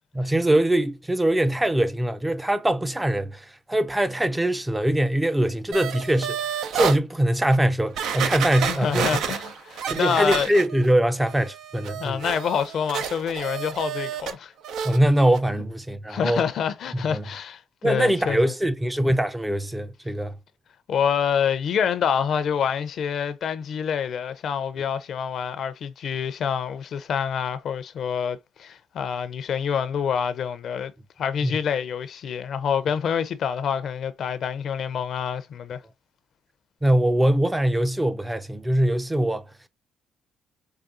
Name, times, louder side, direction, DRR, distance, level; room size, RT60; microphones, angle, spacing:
voice 1, 0.1-9.1 9.9-12.2 14.8-16.4 16.9-17.2 17.8-20.3 31.4-31.6 36.8-39.4, right 1 dB, 10° right, 0.5 m, -22 dB
sound 1, 5.7-7.0 7.5-7.6 8.0-10.9 11.3-14.3 14.6-15.0 15.3-15.4, right 7 dB, 75° right, 0.5 m, -30 dB
voice 2, 8.7-10.5 12.0-14.5 16.1-18.5 20.9-30.9 31.2-35.8, left 7 dB, 60° left, 0.5 m, -27 dB
4.8 x 2.3 x 2.5 m
supercardioid pair, 65°, 0 cm